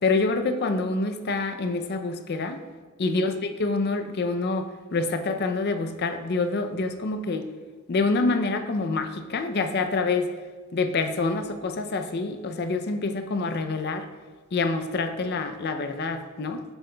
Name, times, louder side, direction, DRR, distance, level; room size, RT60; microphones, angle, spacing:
voice 1, 0.0-2.6 3.0-7.5 7.9-10.3 10.7-14.1 14.5-16.6, left 3 dB, 45° left, 7 dB, 0.4 m, -26 dB
7.3 x 6.9 x 2.2 m, 1.4 s
head